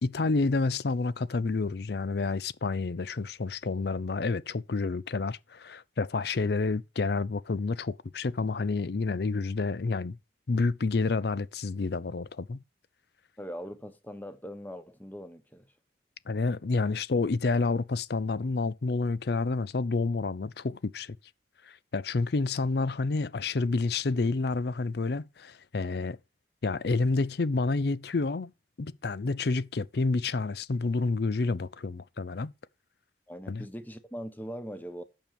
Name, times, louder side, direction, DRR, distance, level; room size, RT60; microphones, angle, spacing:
voice 1, 0.0-10.2 10.5-12.6 16.3-21.2 21.6-26.2 26.6-28.5 28.8-32.5 33.5-33.7, left 3 dB, 55° left, 0.5 m, -29 dB
voice 2, 13.4-15.7 33.3-35.0, equal, 10° left, 1.0 m, -41 dB
8.7 x 7.0 x 5.2 m
head